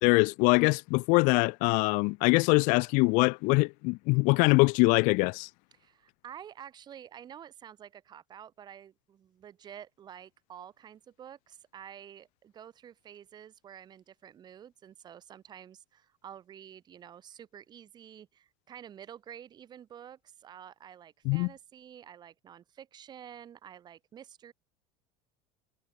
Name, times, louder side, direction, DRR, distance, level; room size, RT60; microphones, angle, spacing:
voice 1, 0.0-5.5 21.3-21.5, left 29 dB, 60° left, 2.1 m, -23 dB
voice 2, 5.7-24.5, right 9 dB, 30° right, 6.8 m, -49 dB
cardioid pair, 165°, 15 cm